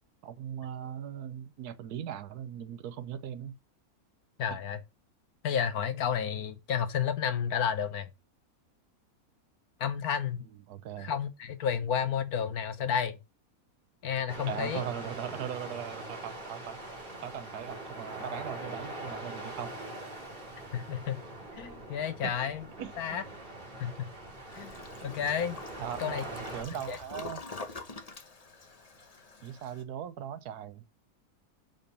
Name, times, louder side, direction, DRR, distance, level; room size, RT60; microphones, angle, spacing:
voice 1, 0.2-3.6 10.7-11.1 14.5-16.8 17.2-19.7 22.2-22.3 22.8-23.2 25.8-27.4 29.4-30.9, right 9 dB, 85° right, 1.3 m, -39 dB
voice 2, 4.4-4.8 5.4-8.1 9.8-10.4 11.0-13.2 14.0-14.8 20.7-21.2 21.5-22.7 23.0-23.2 23.8-24.1 24.5-24.8 25.0-25.6 26.0-26.2 26.9-27.0, left 8 dB, 75° left, 1.5 m, -31 dB
sound 1, 14.3-26.6, right 1 dB, 35° right, 2.9 m, -43 dB
Toilet flush, 24.5-29.8, left 3 dB, 30° left, 0.9 m, -45 dB
7.0 x 5.7 x 5.3 m
omnidirectional pair, 1.6 m